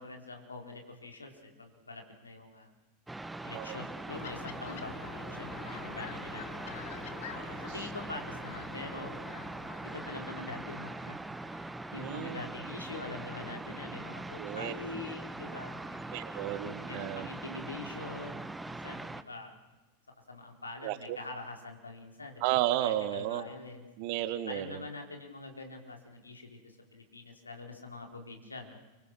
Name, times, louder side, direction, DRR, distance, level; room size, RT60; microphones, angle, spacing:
voice 1, 0.0-2.7 3.4-6.5 7.3-9.1 9.8-16.2 16.9-19.5 20.3-23.9 24.5-28.8, left 3 dB, 80° left, 3 dB, 4.5 m, -44 dB
sound 1, 3.1-19.2, right 2 dB, 5° right, 1.2 m, -42 dB
sound 2, 4.1-10.7, left 8 dB, 55° left, 2.2 m, -47 dB
voice 2, 7.3-7.6 12.0-12.5 14.4-14.7 16.1-17.3 20.8-21.2 22.4-23.4 24.0-24.8, right 13 dB, 45° right, 12 dB, 1.8 m, -33 dB
29.5 x 25.0 x 6.5 m, 1.2 s
figure-of-eight pair, 90°, 0 cm